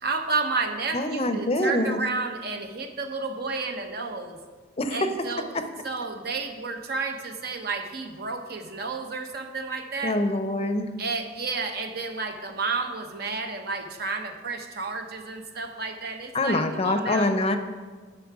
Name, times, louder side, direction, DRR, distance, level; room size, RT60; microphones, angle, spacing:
voice 1, 0.0-4.4 4.9-10.2 11.0-17.3, right 4 dB, 55° right, 6 dB, 0.9 m, -31 dB
voice 2, 0.9-2.0 4.8-5.0 10.0-10.9 16.3-17.6, left 1 dB, 30° left, 8 dB, 0.6 m, -25 dB
10.0 x 6.7 x 4.8 m, 1.4 s
head